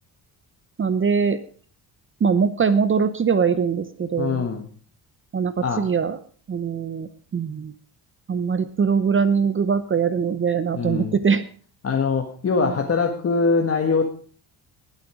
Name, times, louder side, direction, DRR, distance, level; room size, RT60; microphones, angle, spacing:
voice 1, 0.8-1.4 2.2-4.5 5.3-6.2 6.5-7.7 8.3-11.4 12.6-12.7, right 6 dB, 30° right, 12 dB, 0.8 m, -22 dB
voice 2, 4.2-4.7 5.6-5.8 10.7-11.2 11.8-14.0, left 4 dB, 35° left, 3 dB, 1.6 m, -23 dB
19.0 x 7.7 x 4.9 m, 0.43 s
cardioid pair, 125°, 40 cm